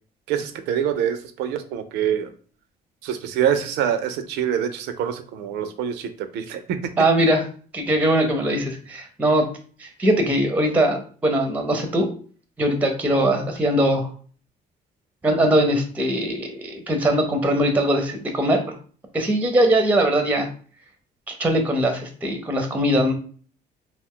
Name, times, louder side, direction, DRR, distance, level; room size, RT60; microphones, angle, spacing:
voice 1, 0.3-2.3 3.0-6.8, right 9 dB, 80° right, 9 dB, 0.4 m, -25 dB
voice 2, 7.0-7.4 7.7-9.5 9.8-12.1 12.6-14.1 15.2-18.6 19.1-20.5 21.3-23.1, right 1 dB, 10° right, 5 dB, 0.5 m, -21 dB
2.4 x 2.2 x 3.6 m, 0.43 s
cardioid pair, 110°, 17 cm